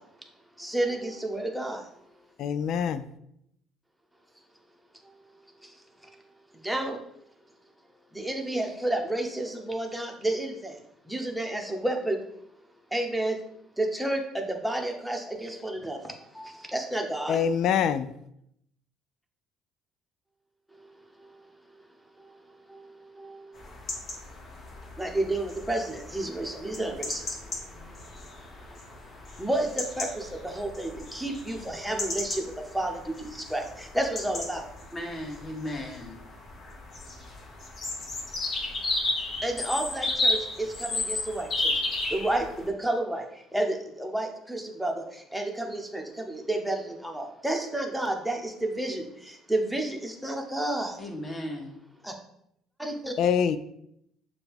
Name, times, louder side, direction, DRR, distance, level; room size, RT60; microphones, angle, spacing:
voice 1, 0.6-1.8 6.6-7.0 8.1-10.5 11.1-12.2 12.9-13.4 13.8-16.0 16.4-17.4 25.0-27.2 29.4-32.4 32.7-34.6 39.4-41.7 42.1-43.2 43.5-44.9 45.3-49.0 49.5-50.9 52.0-52.1 52.8-53.1, right 1 dB, 5° right, 0.9 m, -30 dB
voice 2, 2.4-3.1 17.3-18.1 53.2-53.6, left 8 dB, 65° left, 0.3 m, -24 dB
sound 1, 23.5-42.7, left 2 dB, 45° left, 1.3 m, -34 dB
voice 3, 34.9-36.2 51.0-51.8, left 1 dB, 25° left, 1.4 m, -36 dB
6.7 x 2.3 x 3.5 m
supercardioid pair, 75°, 0 cm